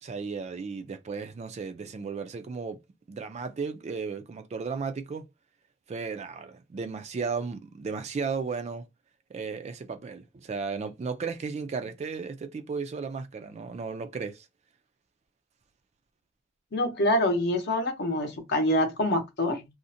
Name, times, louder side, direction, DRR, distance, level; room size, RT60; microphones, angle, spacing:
voice 1, 0.0-2.8 3.1-5.3 5.9-8.8 9.3-14.5, right 5 dB, 35° right, 0.3 m, -34 dB
voice 2, 16.7-19.7, left 1 dB, 60° left, 0.7 m, -26 dB
2.5 x 2.1 x 2.6 m
head